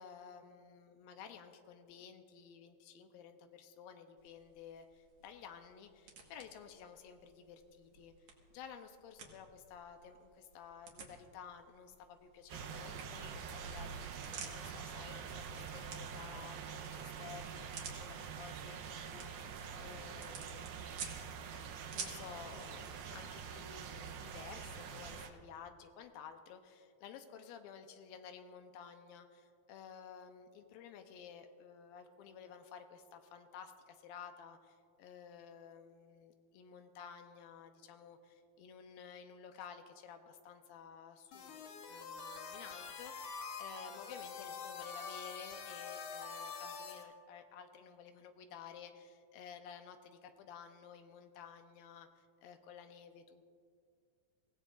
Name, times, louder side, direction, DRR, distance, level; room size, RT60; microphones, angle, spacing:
voice 1, 0.0-8.1 8.5-53.4, left 7 dB, 85° left, 7 dB, 2.6 m, -53 dB
sound 1, 4.2-22.3, right 5 dB, 55° right, 2.5 m, -53 dB
sound 2, 12.5-25.3, right 7 dB, 90° right, 2.7 m, -46 dB
sound 3, 41.3-47.0, left 5 dB, 65° left, 2.4 m, -46 dB
24.0 x 16.5 x 2.5 m, 2.2 s
omnidirectional pair, 4.1 m